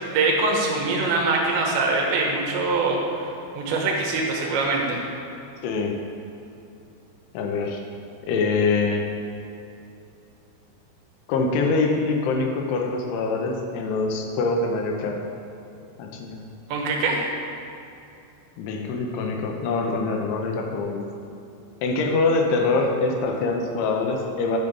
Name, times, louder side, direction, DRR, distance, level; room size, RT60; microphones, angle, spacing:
voice 1, 0.0-3.0 3.5-5.0 16.7-17.2, right 3 dB, 75° right, -1 dB, 3.4 m, -23 dB
voice 2, 5.6-6.0 7.3-7.8 8.3-9.1 11.3-15.2 16.0-16.4 18.6-21.0 21.8-24.6, left 3 dB, 80° left, 1 dB, 3.1 m, -24 dB
11.0 x 6.6 x 5.4 m, 2.8 s
omnidirectional pair, 5.6 m